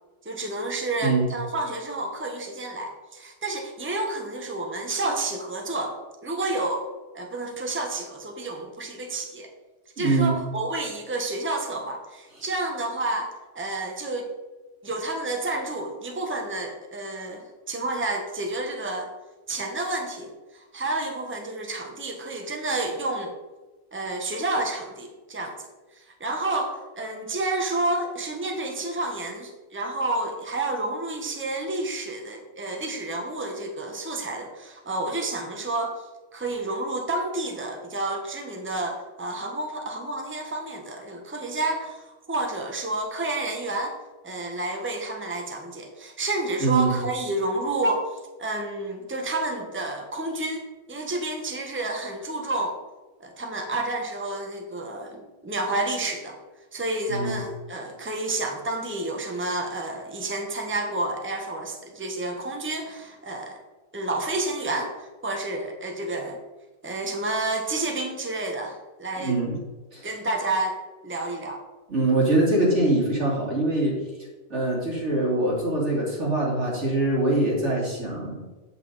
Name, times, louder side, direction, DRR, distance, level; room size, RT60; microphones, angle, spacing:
voice 1, 0.2-5.9 6.2-6.9 7.1-9.5 10.0-14.3 14.8-19.1 19.5-23.3 23.9-25.7 25.9-35.9 36.3-43.9 44.2-48.0 48.4-52.8 53.2-56.4 56.7-63.6 63.9-66.4 66.8-69.4 70.0-70.8 71.0-71.6, right 2 dB, 10° right, 2 dB, 1.1 m, -30 dB
voice 2, 10.0-10.3 46.6-47.0 57.1-57.4 69.2-69.6 69.9-70.1 71.9-74.0 74.5-78.4, right 2 dB, 85° right, -4 dB, 3.2 m, -23 dB
8.3 x 8.0 x 4.0 m, 1.2 s
omnidirectional pair, 1.2 m